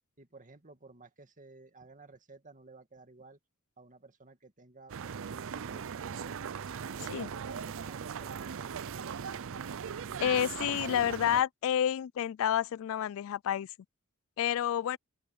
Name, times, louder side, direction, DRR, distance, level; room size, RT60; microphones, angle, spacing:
voice 1, 0.2-3.4 3.8-6.4 6.9-8.9, right 3 dB, 35° right, 2.2 m, -54 dB
sound 1, 4.9-11.4, right 7 dB, 65° right, 0.5 m, -39 dB
voice 2, 10.2-13.7 14.4-15.0, left 10 dB, 65° left, 0.3 m, -29 dB
open air
head